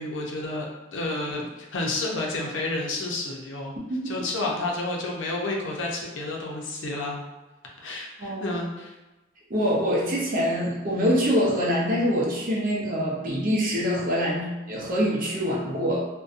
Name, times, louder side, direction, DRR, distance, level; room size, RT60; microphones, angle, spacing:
voice 1, 0.0-3.7 4.0-7.2 7.8-8.9, left 2 dB, 90° left, -1 dB, 0.5 m, -30 dB
voice 2, 3.8-4.1 8.2-8.6 9.5-16.0, equal, 50° right, -4 dB, 0.6 m, -25 dB
2.6 x 2.1 x 2.4 m, 1.1 s
head